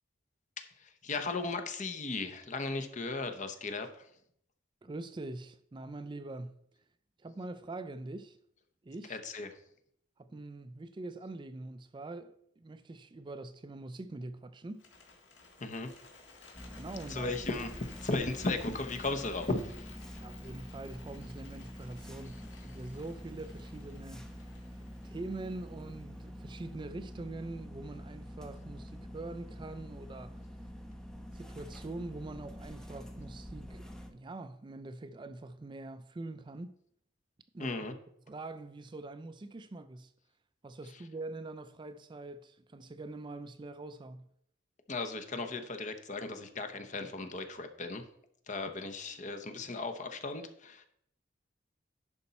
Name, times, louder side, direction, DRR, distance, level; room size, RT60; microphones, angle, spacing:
voice 1, 0.6-4.1 9.1-9.5 15.6-15.9 17.1-17.7 18.0-19.9 37.6-37.9 44.9-48.0 48.5-50.9, left 3 dB, 40° left, 0.9 m, -36 dB
voice 2, 4.8-6.6 7.2-8.4 8.8-9.2 10.2-14.9 16.7-17.7 20.2-24.7 25.0-30.4 31.3-36.7 37.5-37.9 38.3-40.1 40.6-44.3, right 2 dB, 25° right, 0.4 m, -44 dB
Bird, 14.7-26.9, left 4 dB, 65° left, 2.0 m, -55 dB
sound 1, 16.5-34.1, equal, 5° left, 0.8 m, -46 dB
11.0 x 5.3 x 4.1 m
head